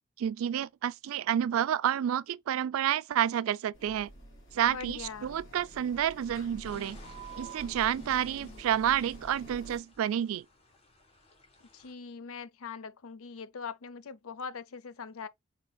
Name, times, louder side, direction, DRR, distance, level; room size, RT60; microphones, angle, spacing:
voice 1, 0.2-4.1 4.5-7.0 7.4-10.4, right 10 dB, 75° right, 0.3 m, -29 dB
sound 1, 3.7-9.8, right 1 dB, 75° left, 2.6 m, -48 dB
voice 2, 4.7-5.3 11.7-15.3, left 5 dB, 90° left, 0.5 m, -42 dB
sound 2, 6.6-11.9, left 3 dB, 30° left, 1.3 m, -58 dB
4.2 x 4.0 x 2.2 m
head